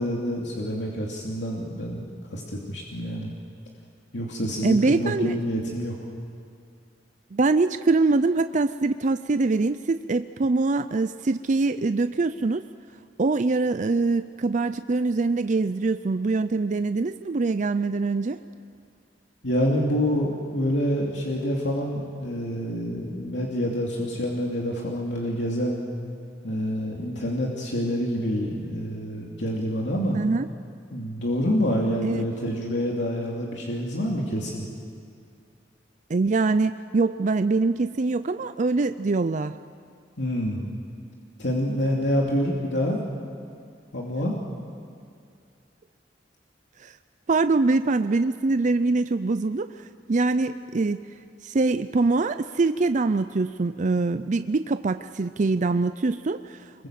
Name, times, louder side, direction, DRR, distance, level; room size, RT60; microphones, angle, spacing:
voice 1, 0.0-2.0 2.3-3.3 4.1-5.9 19.4-25.8 26.4-30.2 30.9-34.7 40.2-40.7 41.4-43.2 43.9-44.4 56.8-56.9, equal, 80° left, -2 dB, 2.8 m, -27 dB
voice 2, 4.6-5.4 7.3-12.6 13.2-18.4 30.1-30.5 32.0-32.2 36.1-39.6 46.8-47.0 47.3-51.0 51.4-56.9, right 3 dB, 45° right, 11 dB, 0.5 m, -24 dB
25.5 x 22.5 x 7.6 m, 2.4 s
head